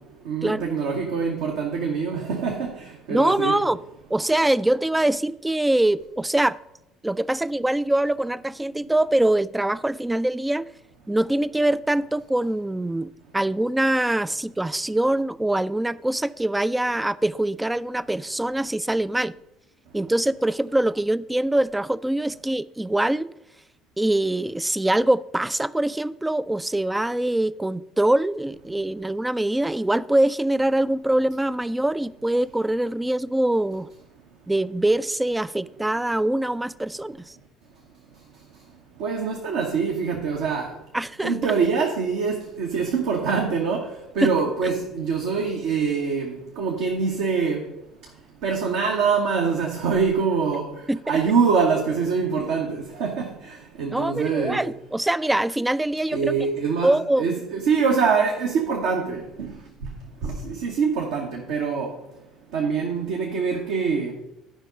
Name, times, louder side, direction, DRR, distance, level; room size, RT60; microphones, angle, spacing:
voice 1, 0.2-3.6 39.0-40.8 41.2-47.7 48.4-50.7 51.1-54.7 56.1-59.6 60.2-61.9 62.5-64.1, right 5 dB, 65° right, 1.1 m, -24 dB
voice 2, 3.1-3.8 4.1-6.6 7.0-10.7 11.1-19.3 19.9-23.3 24.0-33.9 34.5-37.2 40.9-41.4 44.2-44.3 50.9-51.0 53.9-56.3 56.8-57.3, right 1 dB, 10° right, 0.3 m, -23 dB
11.5 x 5.3 x 5.0 m
figure-of-eight pair, 55°, 0 cm